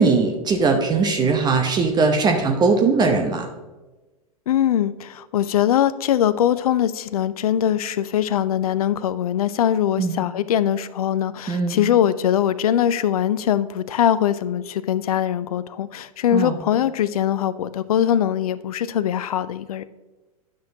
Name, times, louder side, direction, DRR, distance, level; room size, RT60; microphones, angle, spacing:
voice 1, 0.0-3.5 10.0-10.1 11.5-11.8 16.3-16.6, right 4 dB, 20° right, 4 dB, 0.8 m, -19 dB
voice 2, 4.5-19.8, left 10 dB, 70° left, 15 dB, 0.4 m, -22 dB
10.0 x 6.2 x 2.8 m, 1.1 s
figure-of-eight pair, 100°, 20 cm